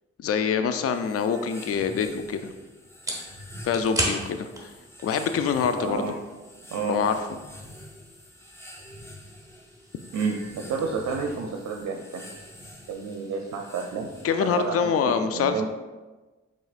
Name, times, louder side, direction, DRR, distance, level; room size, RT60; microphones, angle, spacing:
voice 1, 0.2-2.5 3.6-4.7 5.0-6.0 6.9-7.2 14.2-15.7, left 6 dB, 55° left, 9 dB, 0.4 m, -25 dB
sound 1, 0.8-14.7, equal, 10° left, 0.8 m, -46 dB
sound 2, 2.9-15.0, right 1 dB, 10° right, 1.3 m, -39 dB
voice 2, 5.8-6.2 6.7-7.1 10.1-12.3 12.9-14.1 14.4-15.7, right 5 dB, 70° right, 2 dB, 0.5 m, -30 dB
4.7 x 3.9 x 2.4 m, 1.2 s
supercardioid pair, 45°, 29 cm